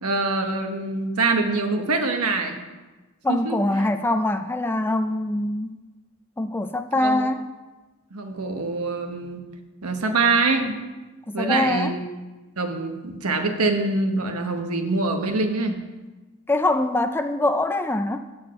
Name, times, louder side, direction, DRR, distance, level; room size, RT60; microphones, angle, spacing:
voice 1, 0.0-2.6 3.3-3.6 7.0-7.3 8.1-9.4 9.8-10.7 11.3-12.0 12.6-15.8, right 3 dB, 90° right, 5 dB, 1.1 m, -24 dB
voice 2, 3.2-5.7 6.4-7.5 11.3-11.9 16.5-18.2, left 1 dB, 10° left, 8 dB, 0.3 m, -23 dB
9.1 x 4.6 x 7.5 m, 1.2 s
head